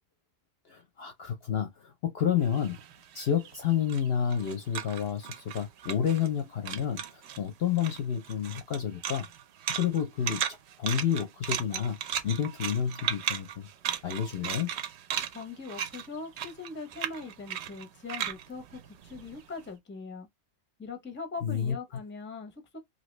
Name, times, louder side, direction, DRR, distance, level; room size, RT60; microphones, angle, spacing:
voice 1, 0.7-2.8 3.1-9.3 9.8-12.0 12.2-13.7 14.0-14.7 21.4-21.7, left 8 dB, 60° left, 0.7 m, -30 dB
sound 1, 2.4-6.4 6.6-7.4 7.7-19.6, right 9 dB, 65° right, 0.7 m, -36 dB
voice 2, 15.3-20.3 20.8-22.8, left 4 dB, 10° left, 0.6 m, -41 dB
2.8 x 2.7 x 3.1 m
omnidirectional pair, 1.4 m